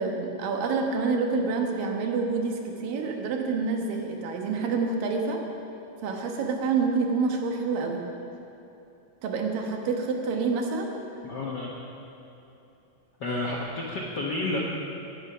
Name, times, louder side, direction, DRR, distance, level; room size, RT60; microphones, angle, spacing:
voice 1, 0.0-5.4 6.0-8.0 9.2-10.9, right 4 dB, 80° right, 2 dB, 3.1 m, -27 dB
voice 2, 11.2-11.7 13.2-14.6, left 2 dB, 75° left, -3 dB, 0.9 m, -30 dB
20.0 x 9.4 x 5.7 m, 2.9 s
omnidirectional pair, 3.9 m